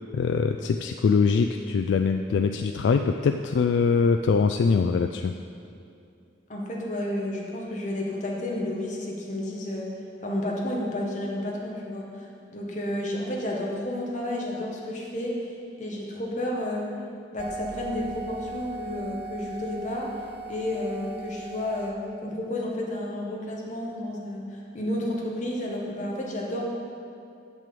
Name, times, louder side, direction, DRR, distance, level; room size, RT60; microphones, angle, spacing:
voice 1, 0.1-5.3, left 5 dB, 70° left, 6 dB, 0.3 m, -23 dB
voice 2, 6.5-9.9 10.2-12.2 12.5-15.5 15.8-16.9 17.3-20.1 20.5-26.6, left 1 dB, 40° left, -2 dB, 1.4 m, -31 dB
sound 1, 17.4-21.9, right 3 dB, 45° right, 0.8 m, -38 dB
7.6 x 6.2 x 6.8 m, 2.6 s
head